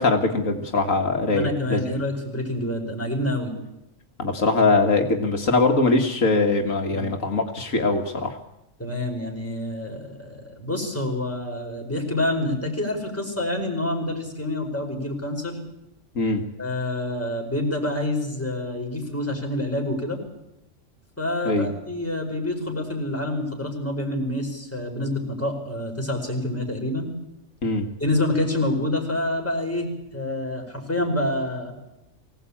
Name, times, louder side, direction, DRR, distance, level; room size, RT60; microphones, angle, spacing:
voice 1, 0.0-1.8 4.2-8.4 16.2-16.4 21.5-21.7 27.6-27.9, left 3 dB, 75° left, 4 dB, 2.2 m, -22 dB
voice 2, 1.3-3.5 6.9-7.0 8.8-15.6 16.6-20.2 21.2-27.1 28.0-31.7, left 1 dB, 10° left, 1 dB, 5.0 m, -27 dB
24.0 x 17.0 x 8.7 m, 0.91 s
omnidirectional pair, 1.4 m